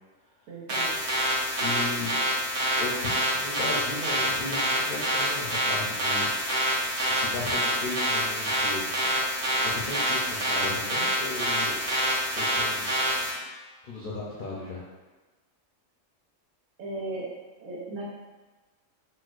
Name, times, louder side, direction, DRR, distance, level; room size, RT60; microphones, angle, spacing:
voice 1, 0.5-1.0 13.3-13.4 16.8-17.3 17.6-18.0, right 2 dB, 85° right, -4 dB, 1.1 m, -36 dB
sound 1, 0.7-13.3, right 1 dB, 60° right, 1.0 m, -27 dB
voice 2, 1.6-2.1 2.8-6.3 7.0-9.0 9.6-11.8 12.4-12.9 13.8-14.8, left 3 dB, 60° left, -6 dB, 0.5 m, -36 dB
4.2 x 2.1 x 2.4 m, 1.2 s
omnidirectional pair, 1.4 m